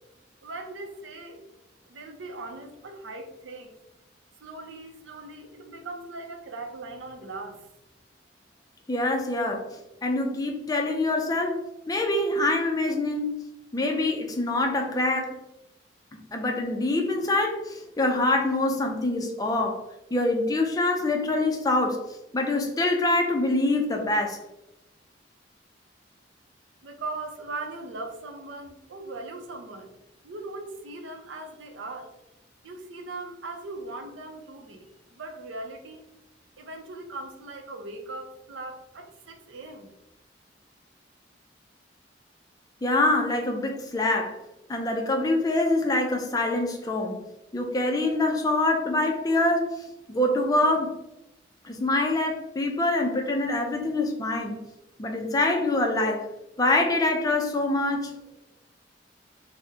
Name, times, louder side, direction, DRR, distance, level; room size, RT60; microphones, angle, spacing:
voice 1, 0.4-1.4 1.9-3.7 4.4-7.6 26.8-29.9 30.2-32.1 32.6-36.1 36.6-39.9, right 2 dB, 85° right, 5 dB, 0.5 m, -39 dB
voice 2, 8.9-9.7 10.0-11.6 11.9-13.3 13.7-15.4 16.3-19.8 20.1-22.0 22.3-24.4 42.8-44.4 44.7-47.2 47.5-51.0 51.6-54.6 55.0-56.3 56.6-58.1, left 2 dB, 20° left, 3 dB, 0.4 m, -25 dB
3.5 x 2.0 x 2.7 m, 0.90 s
head